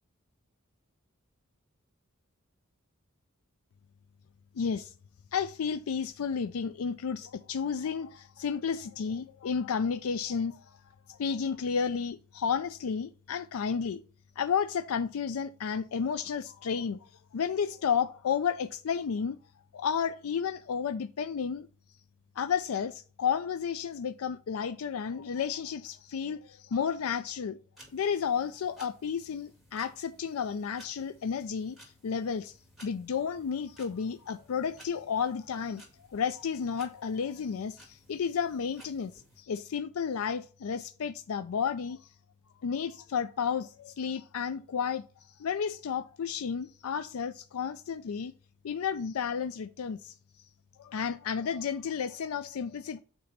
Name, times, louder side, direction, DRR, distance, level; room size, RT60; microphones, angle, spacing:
voice 1, 4.6-4.9 5.3-10.7 11.1-14.0 14.4-19.4 19.7-21.7 22.4-27.6 27.9-31.8 32.0-32.5 32.8-35.8 36.1-39.1 39.4-42.1 42.6-45.0 45.4-48.3 48.6-50.1 50.8-53.0, left 6 dB, 85° left, 0.4 m, -32 dB
sound 1, 27.8-39.4, right 1 dB, ahead, 2.3 m, -58 dB
8.5 x 3.0 x 5.6 m
head